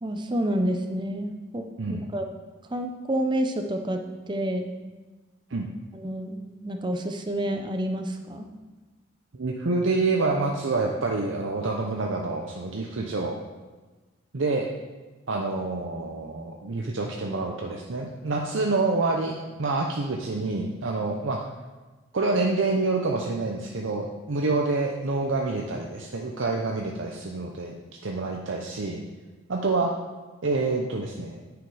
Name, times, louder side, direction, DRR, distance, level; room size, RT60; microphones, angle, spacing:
voice 1, 0.0-2.3 2.7-4.0 4.3-4.7 5.9-8.5, right 1 dB, 25° right, 5 dB, 0.7 m, -29 dB
voice 2, 9.3-13.3 14.3-14.7 15.3-21.4 22.1-27.7 28.0-29.0 29.5-29.9 30.4-31.4, right 3 dB, 70° right, 0 dB, 0.7 m, -27 dB
9.4 x 5.0 x 4.9 m, 1.3 s
head